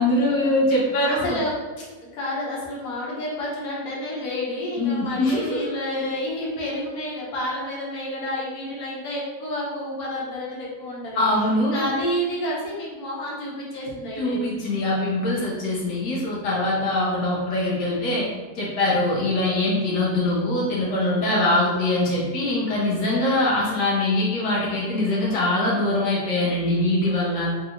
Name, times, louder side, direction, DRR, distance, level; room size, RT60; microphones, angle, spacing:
voice 1, 0.0-1.4 4.8-5.7 11.1-11.9 14.2-18.3 18.6-27.5, left 1 dB, 85° left, -5 dB, 1.4 m, -23 dB
voice 2, 1.0-1.5 2.1-11.2 11.7-14.4, left 1 dB, 65° left, -6 dB, 1.4 m, -30 dB
3.6 x 2.6 x 2.8 m, 1.4 s
omnidirectional pair, 1.8 m